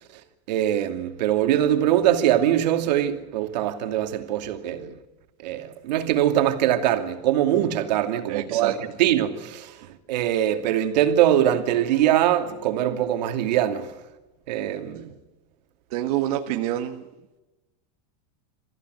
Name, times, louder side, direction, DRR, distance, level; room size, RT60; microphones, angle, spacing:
voice 1, 0.5-4.9 5.4-9.8 10.1-13.9 14.5-15.1, right 11 dB, 85° right, 2.7 m, -22 dB
voice 2, 8.3-8.7 15.9-17.0, right 12 dB, 60° right, 1.5 m, -27 dB
27.0 x 15.5 x 9.4 m
supercardioid pair, 175°, 21 cm